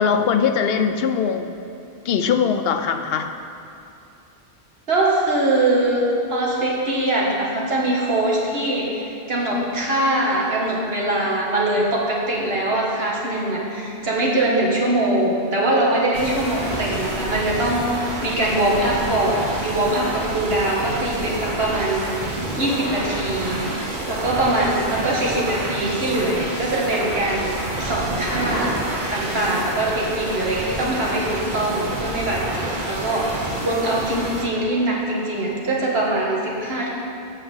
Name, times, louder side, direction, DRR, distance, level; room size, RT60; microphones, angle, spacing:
voice 1, 0.0-1.5 2.1-3.3 33.5-33.6, left 6 dB, 70° left, 8 dB, 0.8 m, -21 dB
voice 2, 4.9-23.6 24.1-28.8 29.1-36.9, right 1 dB, 70° right, -4 dB, 1.7 m, -22 dB
sound 1, 16.1-34.4, right 1 dB, 50° right, 1.3 m, -29 dB
7.3 x 5.8 x 7.0 m, 2.7 s
omnidirectional pair, 1.1 m